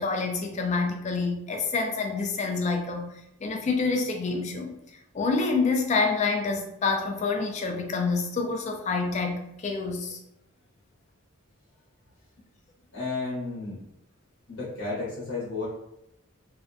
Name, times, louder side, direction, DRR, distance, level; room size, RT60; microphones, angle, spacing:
voice 1, 0.0-3.1 3.4-4.7 5.1-10.2, left 4 dB, 35° left, 3 dB, 0.3 m, -27 dB
voice 2, 12.9-13.8 14.5-15.7, left 3 dB, 60° left, -7 dB, 0.8 m, -32 dB
2.5 x 2.2 x 2.5 m, 0.83 s
head